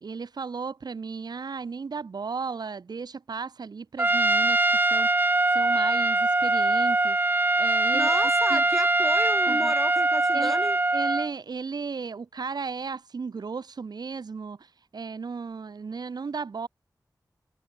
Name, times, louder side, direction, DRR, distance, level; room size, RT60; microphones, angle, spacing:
voice 1, 0.0-4.6 4.9-5.1 5.5-7.2 7.6-8.6 9.5-9.7 10.3-10.6 10.9-14.7 14.9-16.7, right 5 dB, 70° right, 0.5 m, -35 dB
Trumpet, 4.0-11.3, right 2 dB, 30° right, 0.6 m, -22 dB
voice 2, 7.9-10.8, equal, 5° left, 0.9 m, -33 dB
wide cardioid pair, 70°, 7 cm